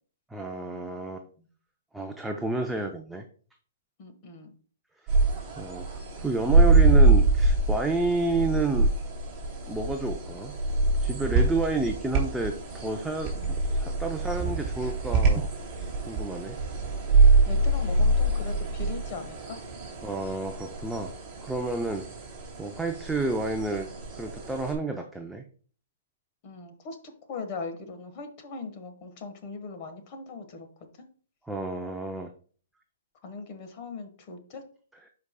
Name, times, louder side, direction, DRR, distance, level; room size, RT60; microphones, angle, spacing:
voice 1, 0.3-1.2 1.9-3.2 5.6-5.9 6.2-8.9 9.7-10.5 11.0-13.3 13.7-15.5 15.8-16.6 20.0-21.1 21.4-22.1 22.6-23.9 24.2-25.4 31.5-32.3, right 2 dB, 5° right, 3 dB, 0.5 m, -30 dB
voice 2, 4.0-4.5 13.3-13.5 17.5-19.6 26.4-27.0 27.3-30.7 33.2-34.6, left 4 dB, 35° left, 6 dB, 1.3 m, -39 dB
sound 1, 5.1-24.7, right 3 dB, 25° right, 2.8 m, -25 dB
11.0 x 4.8 x 2.2 m, 0.43 s
hypercardioid pair, 155°, 0 cm